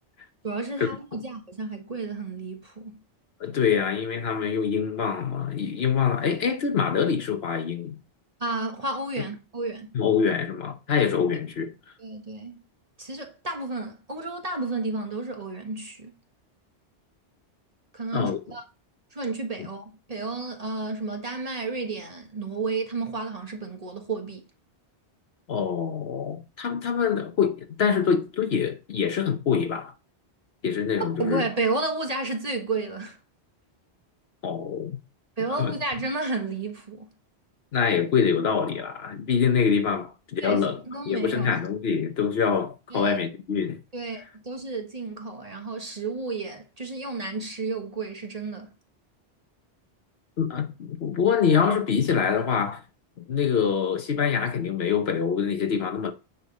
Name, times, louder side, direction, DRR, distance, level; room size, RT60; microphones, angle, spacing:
voice 1, 0.4-3.0 8.4-9.9 12.0-12.6 13.0-16.2 17.9-18.6 19.1-24.4 30.9-33.2 35.4-37.1 40.4-41.6 42.9-43.2 43.9-48.7, right 3 dB, 35° right, 1.6 m, -32 dB
voice 2, 3.4-8.0 9.9-11.7 18.1-18.4 25.5-29.9 30.6-31.4 34.4-35.0 35.6-35.7 37.7-43.8 50.4-52.8 53.3-56.1, left 6 dB, 70° left, 1.1 m, -25 dB
9.5 x 5.6 x 4.1 m
omnidirectional pair, 1.1 m